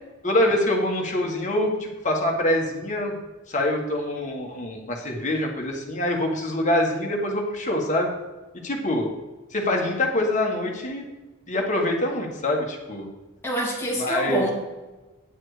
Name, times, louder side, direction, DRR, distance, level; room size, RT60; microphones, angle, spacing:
voice 1, 0.2-3.2 3.5-8.1 8.6-9.1 9.5-11.0 11.5-13.1 13.9-14.5, left 1 dB, 35° left, 1 dB, 1.7 m, -25 dB
voice 2, 13.4-14.5, right 1 dB, 10° left, -4 dB, 2.5 m, -26 dB
9.2 x 7.4 x 5.1 m, 1.2 s
head